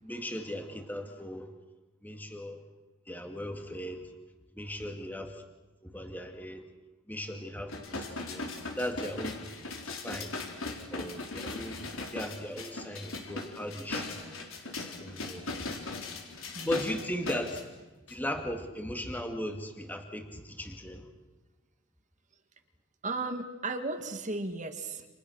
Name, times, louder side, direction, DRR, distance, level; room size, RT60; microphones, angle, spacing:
voice 1, 0.0-1.5 2.0-2.6 3.1-4.1 4.5-5.4 5.8-6.7 7.1-9.5 9.9-10.3 10.9-11.9 12.1-14.2 14.8-15.7 16.6-17.6 18.1-21.1, left 1 dB, 10° left, 4 dB, 2.2 m, -37 dB
sound 1, 7.7-17.6 18.1-18.2, left 3 dB, 70° left, 4.3 m, -39 dB
voice 2, 23.0-25.1, right 3 dB, 35° right, 7 dB, 2.1 m, -35 dB
29.5 x 27.5 x 6.6 m, 1.2 s
head